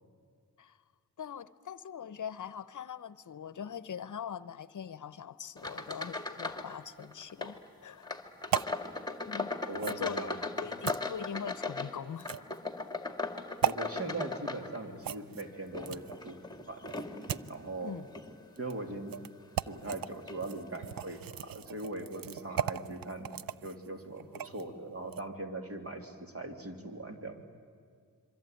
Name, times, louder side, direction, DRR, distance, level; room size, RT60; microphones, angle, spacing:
voice 1, 1.2-8.1 9.3-9.5 9.8-10.3 10.6-12.3 17.8-18.1, left 8 dB, 60° left, 16 dB, 0.8 m, -42 dB
sound 1, 5.6-6.7 7.0-7.6 8.0-15.1 15.6-17.5 18.1-18.3 18.9-19.0 19.9-20.0 20.3-20.4, left 3 dB, 10° left, 2.2 m, -38 dB
sound 2, 8.5-8.8 9.8-10.0 10.9-11.0 12.2-12.6 13.6-13.8 15.0-16.2 16.9-17.5 18.6-18.7 19.1-19.3 19.6-20.1 20.4-24.7 25.0-25.2, right 10 dB, 75° right, 0.6 m, -36 dB
voice 2, 9.6-10.4 13.6-16.9 17.5-18.0 18.6-19.1 19.6-23.3 23.6-27.4, right 2 dB, 40° right, 5 dB, 3.2 m, -40 dB
26.5 x 24.0 x 9.2 m, 2.1 s
cardioid pair, 85°, 35 cm